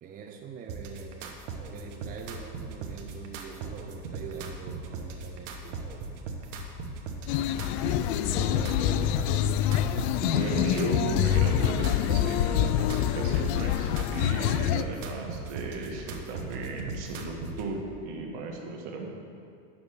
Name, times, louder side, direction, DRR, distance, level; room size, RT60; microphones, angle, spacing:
voice 1, 0.0-5.9 8.2-9.4, right 6 dB, 25° right, 4 dB, 0.5 m, -43 dB
sound 1, 0.7-17.7, right 3 dB, 80° right, 1.2 m, -39 dB
sound 2, 7.3-14.8, left 11 dB, 65° left, 0.5 m, -26 dB
voice 2, 10.2-19.1, right 3 dB, 60° right, 1 dB, 1.7 m, -35 dB
7.1 x 6.2 x 6.7 m, 2.3 s
supercardioid pair, 110°, 37 cm